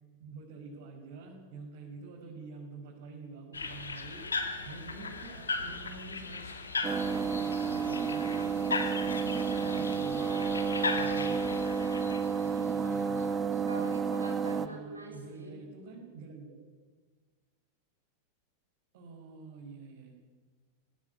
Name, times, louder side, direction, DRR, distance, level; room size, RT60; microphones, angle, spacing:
voice 1, 0.2-6.5 6.8-8.5 9.1-10.6 10.9-11.7 12.4-13.4 13.8-14.0 14.4-16.6 18.9-20.1, right 4 dB, 55° right, -3 dB, 5.8 m, -47 dB
sound 1, 3.5-13.2, left 4 dB, 75° left, 2.6 m, -37 dB
sound 2, 6.8-14.7, right 6 dB, 20° right, 1.7 m, -31 dB
voice 2, 13.7-15.6, right 2 dB, 80° right, 1 dB, 7.6 m, -44 dB
21.5 x 18.0 x 9.9 m, 1.4 s
figure-of-eight pair, 90°, 0 cm